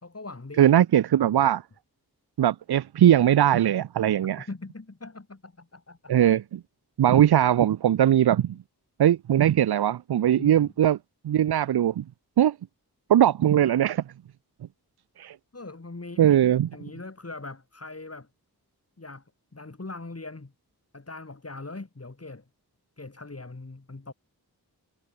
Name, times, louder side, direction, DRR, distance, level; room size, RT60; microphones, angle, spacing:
voice 1, 0.0-0.8 4.4-6.1 10.3-10.7 15.5-18.3 19.0-19.2 19.5-20.5 20.9-22.5 23.0-24.1, left 3 dB, 40° left, 3.2 m, -41 dB
voice 2, 0.6-1.6 2.4-4.5 6.1-6.6 7.0-8.6 9.0-11.0 11.2-12.0 12.4-12.6 13.1-14.0 15.2-15.4 16.2-16.7, right 11 dB, 80° right, 0.5 m, -20 dB
wide cardioid pair, 55°, 38 cm